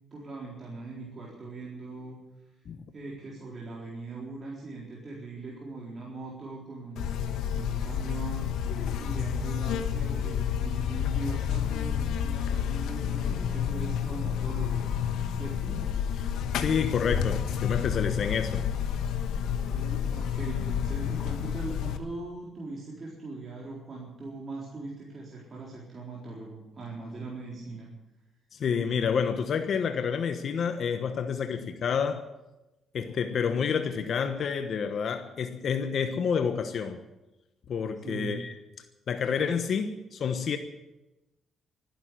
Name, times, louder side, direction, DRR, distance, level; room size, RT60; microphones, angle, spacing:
voice 1, 0.1-2.2 2.9-7.0 7.5-14.9 15.3-15.8 19.6-27.9 38.0-38.4, right 3 dB, 40° right, -4 dB, 4.2 m, -40 dB
Buzz, 7.0-22.0, left 8 dB, 85° left, 1.3 m, -30 dB
voice 2, 16.2-18.7 28.5-32.2 32.9-37.0 37.7-38.5 39.1-40.6, left 6 dB, 60° left, 7 dB, 1.2 m, -29 dB
13.5 x 11.0 x 9.5 m, 1.0 s
cardioid pair, 90°, 0 cm